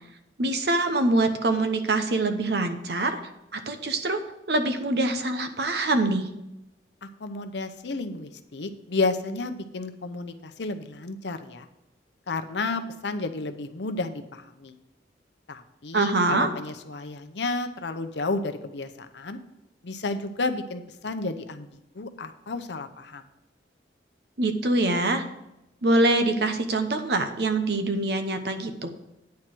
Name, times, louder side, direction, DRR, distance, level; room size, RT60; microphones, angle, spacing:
voice 1, 0.4-3.2 3.5-6.3 15.9-16.5 24.4-25.2 25.8-28.9, right 2 dB, 65° right, 8 dB, 0.9 m, -24 dB
voice 2, 7.2-11.7 12.3-14.8 15.5-19.4 19.8-21.7 21.9-23.2, left 3 dB, 75° left, 8 dB, 0.7 m, -32 dB
9.5 x 4.5 x 7.6 m, 0.90 s
head